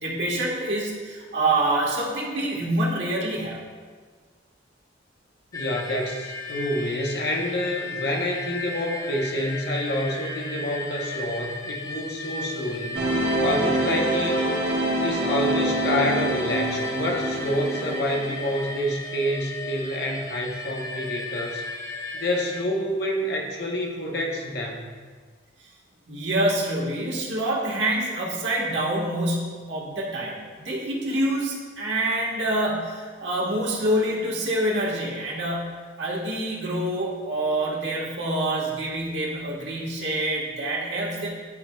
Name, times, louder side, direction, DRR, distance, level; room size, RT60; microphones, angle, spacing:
voice 1, 0.0-3.6 26.1-41.3, right 1 dB, 70° right, -4 dB, 1.5 m, -26 dB
voice 2, 5.5-14.4 15.0-21.6 22.1-24.9, left 1 dB, 55° left, 0 dB, 0.9 m, -28 dB
sound 1, 5.5-22.6, left 3 dB, 20° left, 0.4 m, -35 dB
sound 2, 12.9-18.6, right 1 dB, 85° right, 1.5 m, -26 dB
10.5 x 4.3 x 2.3 m, 1.5 s
head